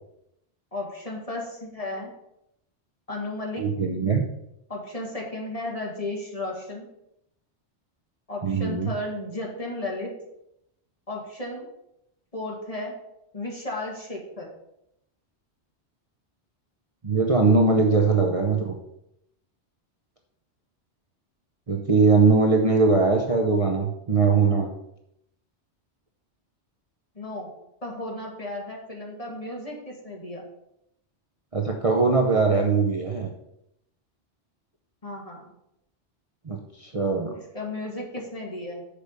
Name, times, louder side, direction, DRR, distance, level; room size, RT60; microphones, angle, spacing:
voice 1, 0.7-2.1 3.1-3.7 4.7-6.9 8.3-10.1 11.1-11.7 12.3-12.9 13.3-14.5 27.2-27.5 27.8-30.5 35.0-35.4 37.3-38.9, left 2 dB, 30° left, -2 dB, 2.0 m, -34 dB
voice 2, 3.6-4.2 8.4-8.9 17.0-18.8 21.7-24.7 31.5-33.3 36.5-37.3, right 4 dB, 35° right, 1 dB, 0.8 m, -21 dB
6.8 x 4.9 x 6.6 m, 0.81 s
omnidirectional pair, 1.2 m